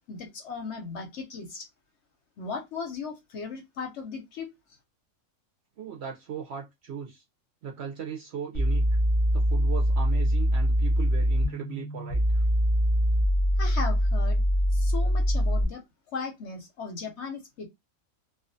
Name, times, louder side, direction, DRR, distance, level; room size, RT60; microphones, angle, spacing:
voice 1, 0.1-1.7 2.4-4.5 13.6-14.4 14.7-15.8 16.1-17.7, left 5 dB, 65° left, 0.7 m, -37 dB
voice 2, 5.8-7.2 7.6-8.9 9.3-12.4, right 7 dB, 65° right, 0.6 m, -38 dB
sound 1, 8.5-15.6, equal, 45° left, 0.4 m, -23 dB
2.4 x 2.3 x 2.5 m
omnidirectional pair, 1.5 m